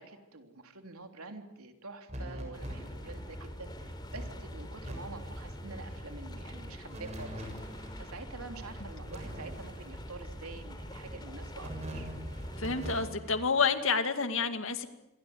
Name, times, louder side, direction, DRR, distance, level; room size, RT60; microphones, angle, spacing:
voice 1, 0.0-7.4 8.0-12.1, right 3 dB, 90° right, 5 dB, 3.3 m, -47 dB
sound 1, 2.1-3.3 3.7-3.8 4.1-4.9 5.2-5.5 6.9-8.0 9.1-10.1 11.6-13.6, equal, 30° right, 7.1 m, -43 dB
sound 2, 2.5-13.1, equal, 20° left, 3.3 m, -44 dB
voice 2, 12.6-14.9, left 5 dB, 65° left, 8 dB, 2.3 m, -29 dB
27.0 x 23.5 x 8.0 m, 0.88 s
head